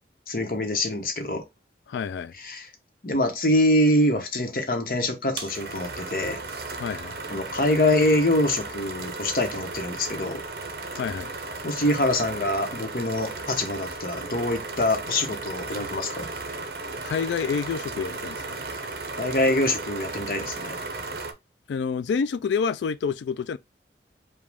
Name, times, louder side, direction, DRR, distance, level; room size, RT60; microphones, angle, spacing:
voice 1, 0.3-1.4 2.4-2.7 3.0-6.4 7.3-10.4 11.6-16.3 19.2-20.8, left 1 dB, 50° left, 1.0 m, -24 dB
voice 2, 1.9-2.3 6.8-7.2 10.9-11.3 17.0-18.5 21.7-23.6, left 6 dB, 85° left, 0.3 m, -28 dB
sound 1, 5.4-21.3, right 3 dB, 55° right, 0.7 m, -35 dB
5.0 x 2.3 x 3.4 m
head